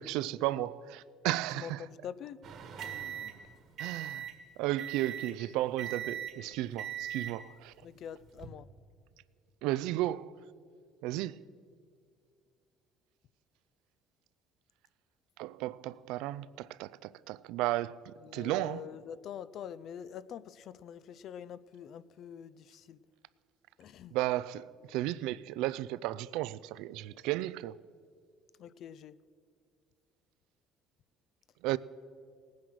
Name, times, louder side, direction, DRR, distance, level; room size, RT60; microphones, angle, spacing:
voice 1, 0.0-1.8 3.8-4.3 4.6-7.7 9.6-10.4 11.0-11.4 15.4-18.9 24.1-27.8 31.6-31.8, right 15 dB, 80° right, 0.3 m, -34 dB
voice 2, 1.5-2.4 7.8-8.7 18.2-23.0 23.8-24.1 28.6-29.2, left 9 dB, 55° left, 0.4 m, -45 dB
sound 1, 2.4-4.4 4.8-5.4 5.8-6.4 6.8-7.4 8.2-8.5, right 10 dB, 50° right, 1.5 m, -40 dB
17.5 x 9.5 x 6.3 m
cardioid pair, 130°, 0 cm